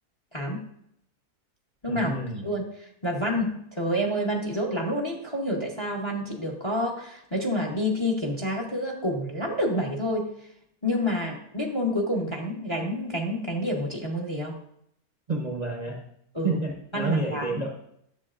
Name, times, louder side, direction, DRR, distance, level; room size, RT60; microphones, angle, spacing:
voice 1, 0.3-0.6 1.8-2.1 2.4-2.6 3.0-10.3 10.8-14.6 16.3-16.6 16.9-17.6, equal, 20° left, 0 dB, 0.8 m, -28 dB
voice 2, 1.9-2.5 15.3-16.0 16.4-17.7, right 2 dB, 35° right, 0 dB, 0.8 m, -29 dB
10.5 x 7.4 x 2.5 m, 0.72 s
omnidirectional pair, 1.6 m